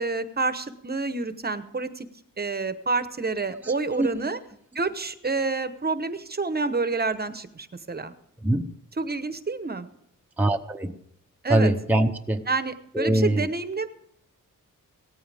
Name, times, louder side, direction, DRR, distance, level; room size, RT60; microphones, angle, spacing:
voice 1, 0.0-2.1 2.4-4.4 4.7-8.1 9.0-9.9 11.4-11.7 12.5-13.9, right 3 dB, 30° right, 11 dB, 1.0 m, -28 dB
voice 2, 3.6-4.1 8.4-8.7 10.4-10.9 11.5-12.5 12.9-13.5, right 1 dB, 5° right, 4 dB, 0.8 m, -23 dB
18.0 x 14.5 x 3.5 m, 0.74 s
wide cardioid pair, 120°, 33 cm